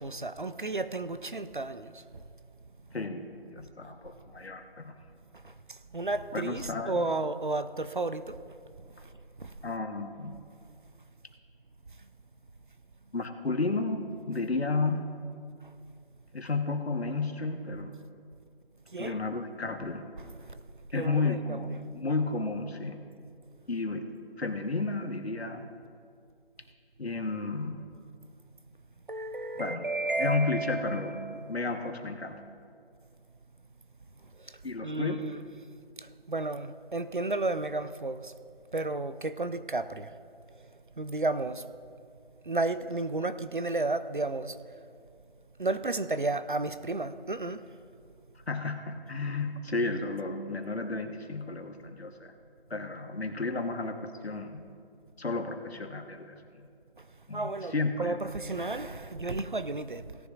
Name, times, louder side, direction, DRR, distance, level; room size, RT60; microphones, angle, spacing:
voice 1, 0.0-2.2 5.3-8.4 8.8-9.1 9.4-9.6 15.6-15.7 18.9-19.2 20.2-20.6 20.9-21.6 29.1-31.6 34.4-35.4 36.0-38.3 38.7-40.2 40.6-40.7 41.0-41.6 42.4-44.8 45.6-47.6 57.0-57.1 57.3-60.2, right 2 dB, 55° right, 0.5 m, -33 dB
voice 2, 2.9-5.0 6.3-7.1 9.6-10.4 13.1-15.0 16.3-18.0 19.0-20.1 20.9-23.0 23.7-24.0 24.4-25.7 27.0-27.9 29.6-29.9 30.2-32.4 34.6-35.2 48.5-52.3 52.7-54.6 55.2-56.4 57.3-58.1, left 3 dB, 85° left, 1.3 m, -32 dB
17.5 x 10.0 x 2.5 m
figure-of-eight pair, 180°, 31 cm